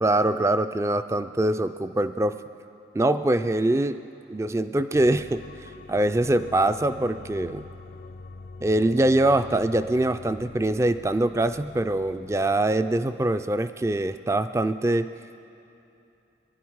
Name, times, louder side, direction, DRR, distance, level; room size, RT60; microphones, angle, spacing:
voice 1, 0.0-2.4 2.9-4.0 4.3-7.6 8.6-15.1, right 1 dB, 15° right, 11 dB, 0.3 m, -23 dB
sound 1, 4.9-12.4, left 3 dB, 50° left, 0.5 m, -44 dB
23.0 x 11.5 x 4.7 m, 2.7 s
head